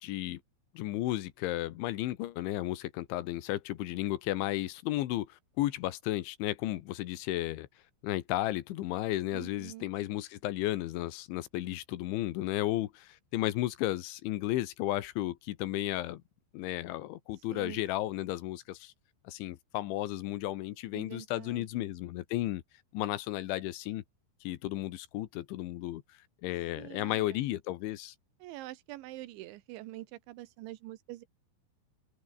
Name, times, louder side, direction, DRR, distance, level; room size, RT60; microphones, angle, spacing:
voice 1, 0.0-0.4 0.8-7.7 8.0-16.2 16.5-18.9 19.3-22.6 22.9-24.0 24.5-26.0 26.4-28.2, left 15 dB, 80° left, 3.6 m, -33 dB
voice 2, 9.3-9.9 17.5-17.8 20.9-21.8 26.8-27.4 28.4-31.3, right 17 dB, 85° right, 3.3 m, -45 dB
open air
omnidirectional pair, 5.4 m